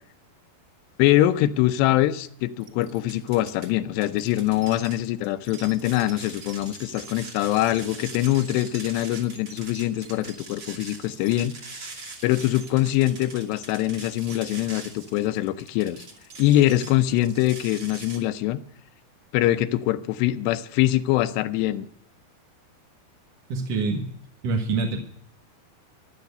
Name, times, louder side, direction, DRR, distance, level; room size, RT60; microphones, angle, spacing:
voice 1, 1.0-11.5 12.2-16.1 16.4-18.6 19.3-21.9, left 14 dB, 90° left, 2.9 m, -23 dB
sound 1, 2.6-3.7 4.0-18.2, right 4 dB, 40° right, 3.0 m, -42 dB
voice 2, 23.5-24.1 24.4-25.0, right 4 dB, 60° right, 1.7 m, -25 dB
14.0 x 10.5 x 6.7 m
omnidirectional pair, 4.7 m